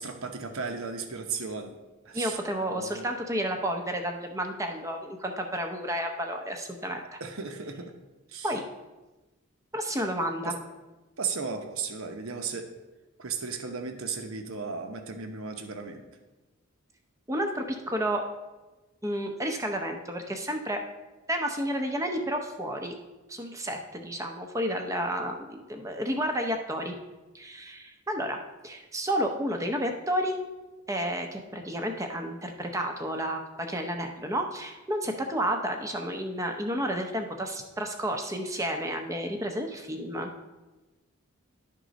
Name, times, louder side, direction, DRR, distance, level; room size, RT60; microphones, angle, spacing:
voice 1, 0.0-1.7 2.0-2.4 2.7-3.1 7.2-7.9 8.3-8.5 10.5-10.6 11.2-12.7 13.2-16.0, right 5 dB, 75° right, 6 dB, 0.8 m, -35 dB
voice 2, 2.1-7.2 8.4-8.6 9.7-10.5 17.3-18.2 19.0-20.8 21.3-23.0 23.3-27.0 27.3-28.4 28.6-30.4 30.9-40.3, equal, 15° right, 4 dB, 0.7 m, -31 dB
11.0 x 3.8 x 5.1 m, 1.1 s
head